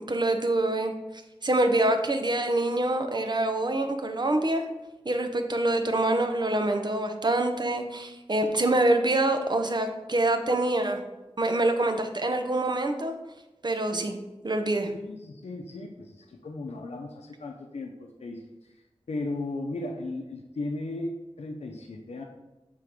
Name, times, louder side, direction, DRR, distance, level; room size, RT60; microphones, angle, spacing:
voice 1, 0.1-0.9 1.4-4.6 5.0-11.0 11.4-13.1 13.6-14.2 14.4-14.9, right 2 dB, 45° right, 5 dB, 0.8 m, -25 dB
voice 2, 14.8-18.8 19.1-22.2, left 2 dB, 90° left, 1 dB, 0.6 m, -36 dB
7.4 x 3.8 x 5.0 m, 1.1 s
wide cardioid pair, 55°, 11 cm